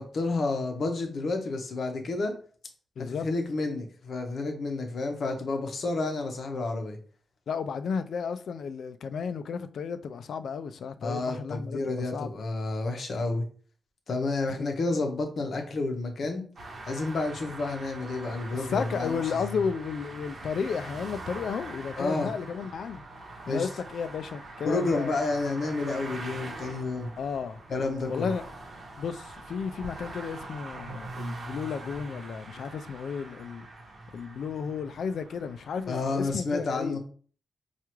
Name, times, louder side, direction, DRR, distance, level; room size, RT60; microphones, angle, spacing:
voice 1, 0.0-2.3 3.2-7.0 11.0-13.5 14.1-16.4 16.9-19.4 22.0-22.3 23.5-23.7 24.6-27.1 27.7-28.3 35.9-37.0, left 3 dB, 55° left, 0.8 m, -30 dB
voice 2, 3.0-3.3 7.5-12.3 14.6-14.7 18.5-23.0 23.5-25.1 27.2-27.6 28.1-28.5 29.0-33.7 34.1-37.0, left 6 dB, 70° left, 0.3 m, -33 dB
sound 1, 16.6-36.0, right 2 dB, 45° right, 1.0 m, -43 dB
4.5 x 2.4 x 3.0 m
wide cardioid pair, 140°, 0 cm